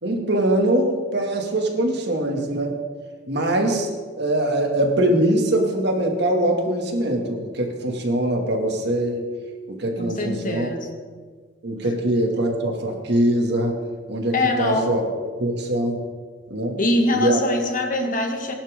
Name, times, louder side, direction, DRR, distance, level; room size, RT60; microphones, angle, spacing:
voice 1, 0.0-2.8 3.3-3.9 4.2-9.3 9.7-10.7 11.6-13.8 14.1-15.0 15.4-16.0 16.5-16.8 17.1-17.4, right 1 dB, 65° right, 2 dB, 2.4 m, -22 dB
voice 2, 10.0-11.0 14.3-14.9 16.8-18.5, left 2 dB, 45° left, 3 dB, 1.9 m, -23 dB
21.0 x 11.5 x 3.8 m, 1.5 s
head